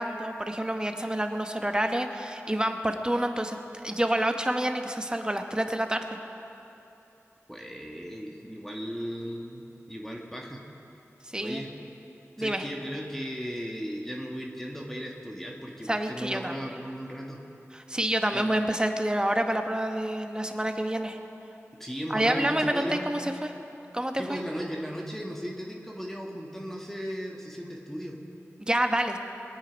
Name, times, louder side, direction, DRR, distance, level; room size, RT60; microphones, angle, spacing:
voice 1, 0.0-6.0 11.3-11.6 12.4-12.6 15.9-16.5 17.9-21.2 22.1-23.5 23.9-24.4 28.6-29.2, right 1 dB, 15° right, 5 dB, 1.1 m, -28 dB
voice 2, 7.5-10.6 11.4-11.7 12.4-17.4 18.3-18.4 21.8-23.1 24.2-28.2, equal, 5° left, -1 dB, 1.7 m, -36 dB
22.0 x 8.9 x 5.2 m, 2.9 s
wide cardioid pair, 50°, 5 cm